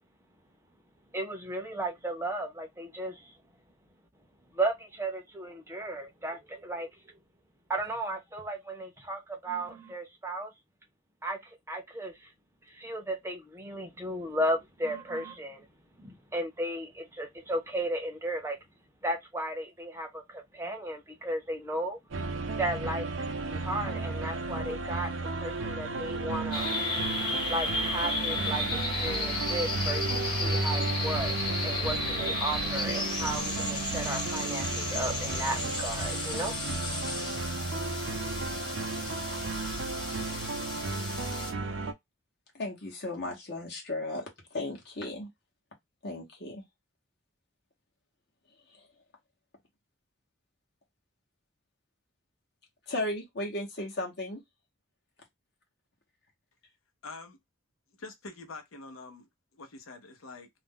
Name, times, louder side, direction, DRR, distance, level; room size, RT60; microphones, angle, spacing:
voice 1, 1.1-3.3 4.5-6.9 7.7-10.5 11.2-11.4 11.7-12.3 12.7-15.7 16.0-18.6 19.0-22.0 22.6-25.1 25.4-26.7 27.5-31.3 31.6-37.0, right 1 dB, 10° right, 0.6 m, -35 dB
sound 1, 22.1-41.9, right 3 dB, 65° right, 0.5 m, -34 dB
sound 2, 26.5-41.5, left 2 dB, 25° left, 1.0 m, -34 dB
voice 2, 42.5-45.3 46.0-46.6 52.9-54.4, left 1 dB, 50° left, 0.9 m, -35 dB
voice 3, 57.0-57.4 58.0-60.5, left 3 dB, 85° left, 0.8 m, -45 dB
2.5 x 2.1 x 3.5 m
head